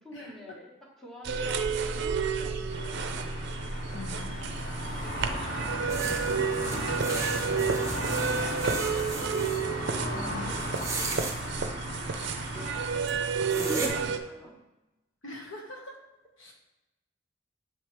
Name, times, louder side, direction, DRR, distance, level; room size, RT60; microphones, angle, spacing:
voice 1, 0.0-3.1 5.0-5.4 5.8-6.2 6.7-9.5 9.9-12.8 13.6-14.6, left 1 dB, ahead, -2 dB, 1.3 m, -49 dB
sound 1, 1.2-14.2, right 5 dB, 60° right, 0.5 m, -31 dB
sound 2, 2.7-13.0, left 1 dB, 40° left, 1.8 m, -36 dB
voice 2, 3.9-4.3 10.1-10.5 15.2-15.9 16.4-16.5, left 3 dB, 75° left, 0 dB, 1.4 m, -42 dB
sound 3, 5.9-9.6 10.6-11.4 12.5-12.6 13.1-13.2 13.5-13.9, right 3 dB, 15° right, 0.8 m, -35 dB
7.8 x 3.2 x 4.6 m, 1.0 s
head